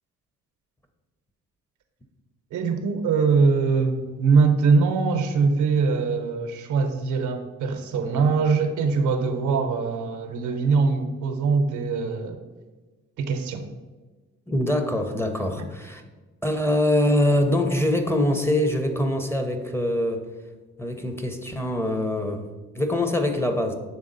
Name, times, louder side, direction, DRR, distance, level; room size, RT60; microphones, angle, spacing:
voice 1, 2.5-12.4 13.2-13.7, right 4 dB, 80° right, 7 dB, 0.8 m, -22 dB
voice 2, 14.5-16.0 16.4-20.3 20.8-22.4 22.7-23.7, left 1 dB, 10° left, 6 dB, 0.7 m, -23 dB
7.2 x 3.5 x 3.9 m, 1.3 s
cardioid pair, 90°, 30 cm